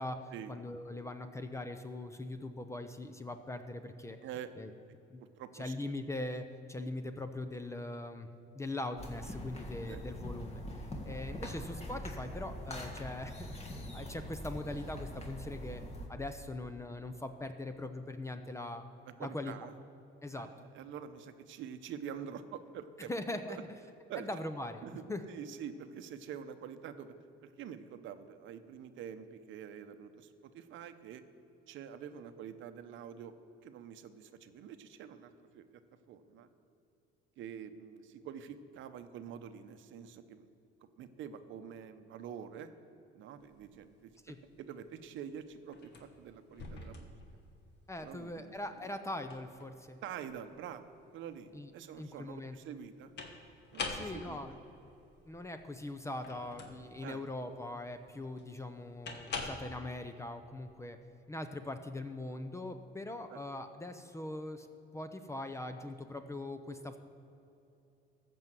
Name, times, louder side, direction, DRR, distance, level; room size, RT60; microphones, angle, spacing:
voice 1, 0.5-4.2 4.6-4.7 5.1-5.2 5.5-8.3 8.5-13.6 13.9-15.8 16.1-18.8 19.2-19.5 20.2-20.7 23.1-23.6 24.2-24.8 25.1-25.2 44.2-44.4 47.9-50.0 51.5-51.7 52.0-52.6 53.9-54.6 55.3-61.0 61.3-64.7 64.9-67.0, left 2 dB, 15° left, 8 dB, 0.6 m, -41 dB
voice 2, 5.4-5.7 9.9-10.0 19.0-19.7 20.3-23.1 23.5-23.6 24.1-24.3 24.8-27.1 27.4-31.2 31.7-33.4 33.6-35.7 36.1-36.5 37.4-40.5 41.0-42.7 43.1-45.9 46.2-47.1 48.0-48.9 50.0-53.1 53.7-54.6 57.0-57.2 63.3-63.4, right 8 dB, 65° right, 9 dB, 0.8 m, -46 dB
sound 1, 9.0-16.1, equal, 30° left, 1.8 m, -43 dB
sound 2, 43.4-59.6, left 3 dB, 55° left, 1.6 m, -46 dB
14.0 x 5.5 x 7.5 m, 2.9 s
cardioid pair, 105°, 21 cm